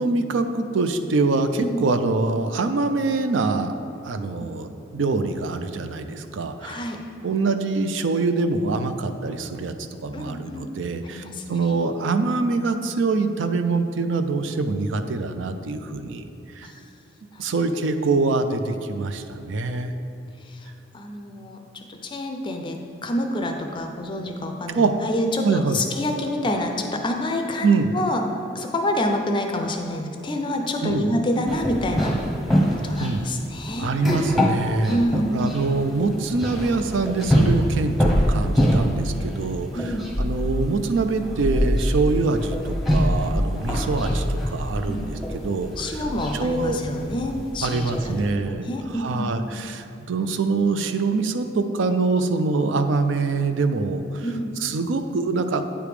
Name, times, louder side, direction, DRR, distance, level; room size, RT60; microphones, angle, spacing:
voice 1, 0.0-3.7 4.0-6.8 7.2-9.7 10.0-16.2 16.5-16.7 17.4-19.9 24.7-24.9 25.4-25.8 27.6-27.9 30.8-31.1 33.0-33.2 33.8-46.0 46.3-46.8 47.6-54.3 54.6-55.6, right 3 dB, 80° right, 9 dB, 0.4 m, -24 dB
voice 2, 6.6-7.0 10.1-10.7 11.1-11.8 16.6-16.8 17.3-17.4 20.4-28.2 28.5-32.2 32.7-33.9 34.9-35.5 39.7-40.1 44.9-45.1 45.8-48.1 48.5-49.4 54.2-54.5, left 1 dB, 25° left, 3 dB, 0.4 m, -27 dB
sound 1, 31.5-48.3, equal, ahead, 0.8 m, -25 dB
8.7 x 3.4 x 4.9 m, 2.8 s
head